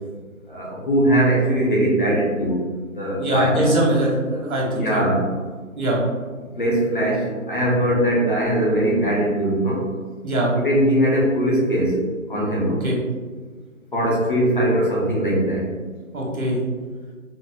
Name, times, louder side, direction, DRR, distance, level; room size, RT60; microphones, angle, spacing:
voice 1, 0.5-3.7 4.6-5.2 6.6-9.8 10.6-12.0 12.3-12.7 13.9-15.7, right 1 dB, 40° left, -4 dB, 0.6 m, -21 dB
voice 2, 3.2-5.1 5.8-6.0 10.2-10.5 12.8-13.0 16.1-16.6, right 1 dB, 80° right, -3 dB, 1.1 m, -22 dB
4.0 x 2.0 x 2.3 m, 1.4 s
figure-of-eight pair, 160°, 42 cm